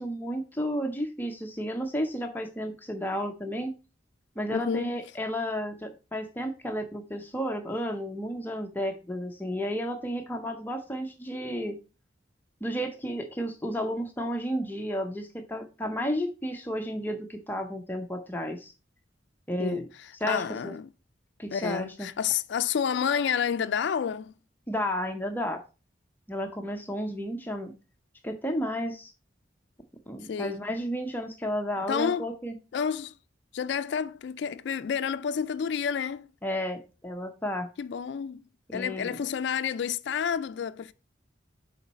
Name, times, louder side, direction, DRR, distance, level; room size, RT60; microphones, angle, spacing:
voice 1, 0.0-3.7 4.4-11.8 12.6-18.7 19.5-19.8 20.2-20.7 21.4-22.1 24.7-25.6 26.3-27.7 28.2-29.1 30.1-32.5 36.4-37.7 38.7-39.2, equal, 10° left, 0.6 m, -32 dB
voice 2, 4.5-5.0 19.6-20.9 21.5-24.3 30.2-30.6 31.9-32.3 32.7-33.2 33.5-36.3 37.8-38.4 38.7-40.9, left 7 dB, 70° left, 0.3 m, -30 dB
7.1 x 4.5 x 4.0 m
head